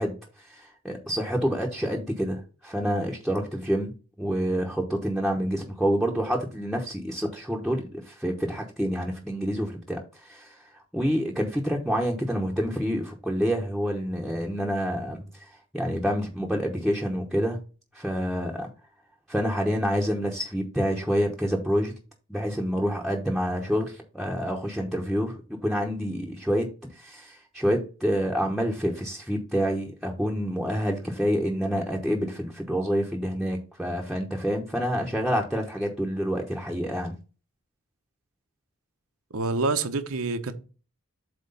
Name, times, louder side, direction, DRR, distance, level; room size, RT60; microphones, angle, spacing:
voice 1, 0.0-3.9 4.2-17.6 17.9-18.7 19.3-21.9 22.3-37.2, equal, ahead, 0.9 m, -28 dB
voice 2, 39.3-40.5, right 3 dB, 65° right, 0.9 m, -27 dB
7.9 x 3.0 x 5.5 m
head